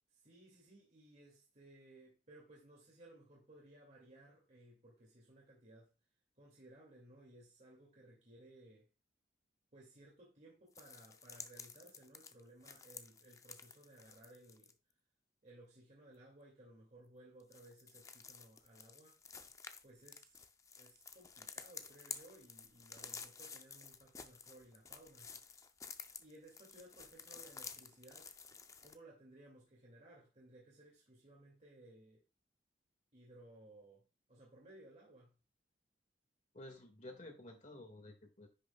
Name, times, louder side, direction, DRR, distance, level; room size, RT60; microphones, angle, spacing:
voice 1, 0.2-5.9 6.4-8.9 9.7-14.7 15.4-19.2 19.8-20.4 20.8-25.4 26.2-28.3 28.8-32.2 33.1-35.4, right 1 dB, 40° right, 2.1 m, -60 dB
sound 1, 10.8-14.7 17.4-29.0, left 5 dB, 15° left, 0.5 m, -52 dB
voice 2, 36.5-38.5, left 1 dB, 40° left, 1.7 m, -52 dB
10.0 x 6.3 x 2.2 m
head